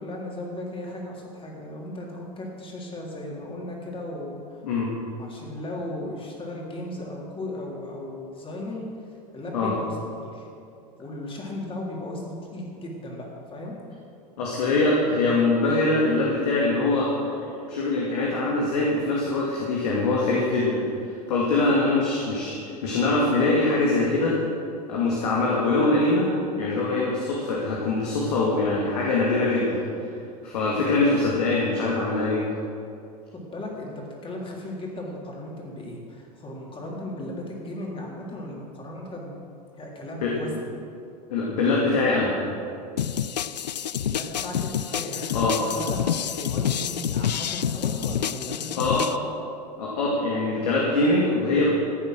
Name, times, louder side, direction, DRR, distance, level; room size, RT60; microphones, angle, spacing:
voice 1, 0.0-4.6 5.2-8.9 9.3-10.5 11.0-13.8 33.3-39.4 39.7-40.7 43.9-49.2, left 1 dB, 25° left, -2 dB, 3.7 m, -36 dB
voice 2, 14.4-20.9 21.3-22.6 22.8-24.4 24.9-26.3 26.6-29.8 30.4-32.5 40.2-40.3 41.3-42.3 45.3-45.6 48.7-49.1 49.8-51.7, left 2 dB, 70° left, -4 dB, 2.4 m, -23 dB
sound 1, 43.0-49.2, left 9 dB, 85° left, 0.4 m, -28 dB
15.0 x 8.9 x 6.3 m, 2.6 s
hypercardioid pair, 85°, 21 cm